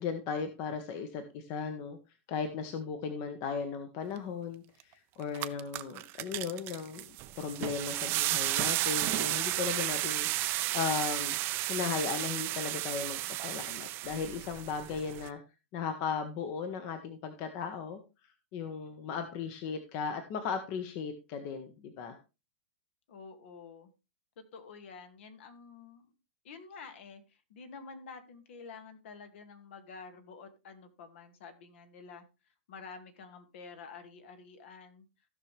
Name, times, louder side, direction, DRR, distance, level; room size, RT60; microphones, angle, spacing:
voice 1, 0.0-2.0 2.3-11.4 11.7-15.4 15.7-18.0 18.5-22.2, left 6 dB, 40° left, 8 dB, 1.3 m, -36 dB
sound 1, 4.8-4.9 5.2-15.3, right 17 dB, 35° right, 0.6 m, -33 dB
voice 2, 23.1-23.9 24.4-26.1 26.4-32.3 32.7-35.1, left 5 dB, 65° left, 8 dB, 2.1 m, -49 dB
15.5 x 5.9 x 3.4 m, 0.28 s
hypercardioid pair, 145°, 7 cm